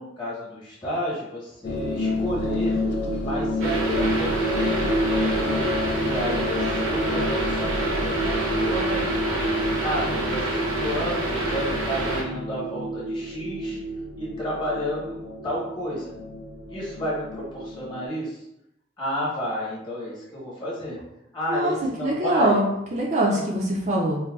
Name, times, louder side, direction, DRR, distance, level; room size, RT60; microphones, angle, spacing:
voice 1, 0.0-2.8 3.1-5.1 6.0-9.1 9.8-13.8 14.2-16.1 16.7-18.4 19.0-21.0 21.3-22.6 23.2-23.4, equal, 25° left, -7 dB, 1.0 m, -31 dB
sound 1, 1.6-18.1, left 1 dB, 55° left, 0.5 m, -29 dB
sound 2, 3.6-12.2, right 2 dB, 85° right, 0.7 m, -27 dB
voice 2, 22.0-24.2, right 1 dB, 35° right, -2 dB, 0.4 m, -23 dB
3.9 x 2.2 x 2.3 m, 0.84 s
head